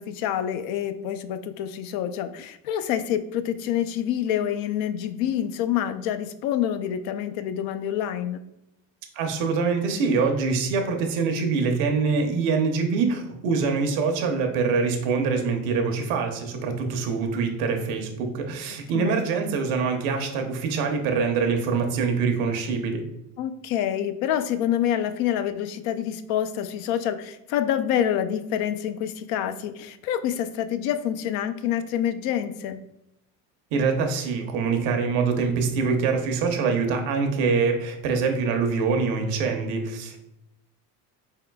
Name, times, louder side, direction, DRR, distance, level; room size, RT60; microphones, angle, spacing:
voice 1, 0.0-8.4 18.9-19.2 23.4-32.8, left 10 dB, 75° left, 10 dB, 0.5 m, -27 dB
voice 2, 9.1-23.0 33.7-40.2, right 5 dB, 85° right, 4 dB, 0.8 m, -24 dB
4.5 x 3.6 x 2.2 m, 0.84 s
supercardioid pair, 110°, 36 cm